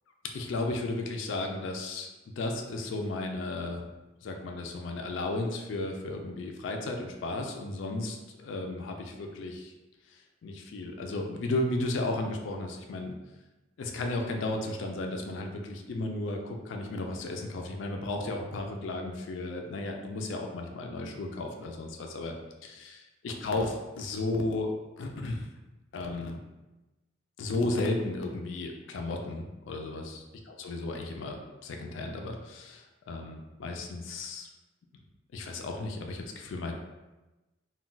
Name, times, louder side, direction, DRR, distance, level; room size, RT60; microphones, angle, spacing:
voice 1, 0.3-2.1 2.4-3.8 4.2-9.7 10.4-13.2 13.8-22.3 22.6-23.0 23.2-24.7 25.0-25.5 25.9-26.4 27.4-30.0 30.6-34.5 35.3-36.7, left 2 dB, 85° left, 3 dB, 0.4 m, -34 dB
2.3 x 2.2 x 3.8 m, 1.1 s
head